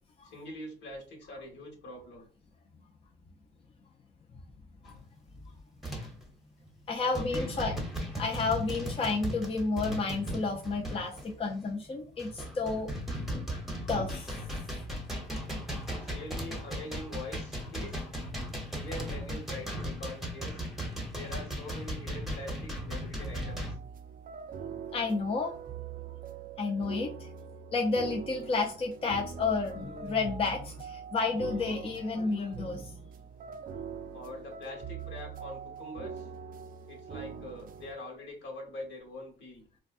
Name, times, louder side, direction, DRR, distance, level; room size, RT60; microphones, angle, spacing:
voice 1, 0.2-2.3 7.0-8.0 15.9-18.0 18.7-20.6 21.1-23.8 34.1-36.3 36.9-39.7, left 1 dB, 65° left, 0 dB, 1.4 m, -44 dB
sound 1, 4.8-5.1 5.8-6.2 6.7-6.8 7.1-11.3 11.9-23.7, equal, ahead, 1.0 m, -37 dB
voice 2, 6.9-7.7 8.2-12.9 13.9-14.3 24.9-25.5 26.6-27.3 27.7-33.0, left 3 dB, 30° left, 0 dB, 0.5 m, -31 dB
sound 2, 23.2-37.9, right 6 dB, 45° right, 0.4 m, -43 dB
3.9 x 2.2 x 2.5 m, 0.40 s
cardioid pair, 90°, 20 cm